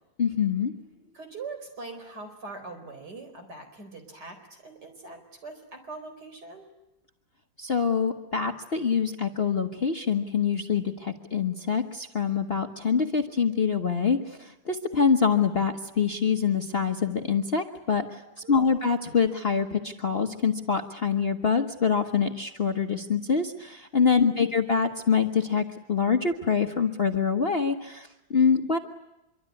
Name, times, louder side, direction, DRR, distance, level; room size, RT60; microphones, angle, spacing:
voice 1, 0.2-0.7 7.6-18.2 18.5-28.8, left 6 dB, 35° left, 4 dB, 1.2 m, -25 dB
voice 2, 1.1-6.7 18.4-18.8 24.2-24.5, right 3 dB, 60° right, 5 dB, 5.1 m, -42 dB
25.5 x 24.0 x 9.7 m, 0.95 s
omnidirectional pair, 2.1 m